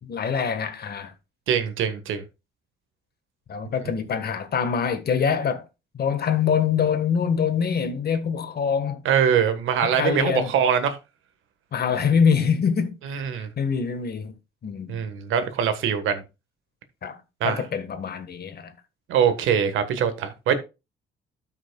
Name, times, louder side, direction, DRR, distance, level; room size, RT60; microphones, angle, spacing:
voice 1, 0.0-1.1 3.5-5.6 5.9-9.0 9.8-10.5 11.7-12.9 13.6-14.3 14.6-15.0 17.0-17.2 17.4-18.7, left 6 dB, 55° left, 1.6 m, -24 dB
voice 2, 1.5-2.2 9.0-11.0 13.1-13.5 14.9-16.2 17.4-17.6 19.1-20.5, right 8 dB, 85° right, 1.5 m, -23 dB
13.0 x 6.0 x 2.3 m
cardioid pair, 90°, 20 cm